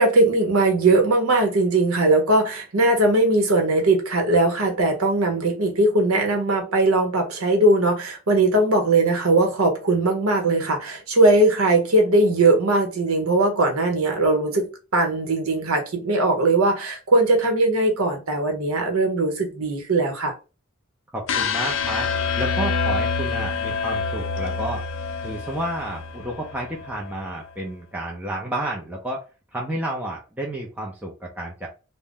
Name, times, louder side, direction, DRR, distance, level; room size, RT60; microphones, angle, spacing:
voice 1, 0.0-20.3, right 2 dB, 80° right, 0.9 m, -20 dB
voice 2, 21.1-22.1 22.4-24.8 25.2-29.2 29.5-31.7, right 1 dB, 5° right, 0.5 m, -30 dB
sound 1, 21.3-27.3, left 5 dB, 65° left, 0.4 m, -27 dB
2.5 x 2.1 x 3.5 m
head